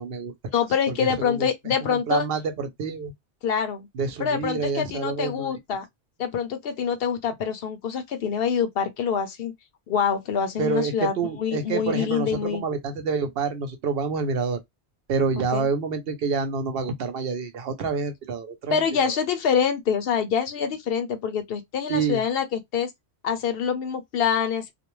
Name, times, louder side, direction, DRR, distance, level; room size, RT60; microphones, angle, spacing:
voice 1, 0.0-0.3 0.9-1.5 1.8-3.1 3.9-5.5 10.6-14.6 15.1-19.1 21.9-22.2, right 5 dB, 65° right, 0.8 m, -28 dB
voice 2, 0.5-2.3 3.4-3.9 4.2-5.9 6.2-9.5 9.9-12.6 15.5-15.7 18.7-22.9 23.2-24.7, left 7 dB, 65° left, 0.7 m, -25 dB
2.4 x 2.1 x 2.9 m
omnidirectional pair, 1.1 m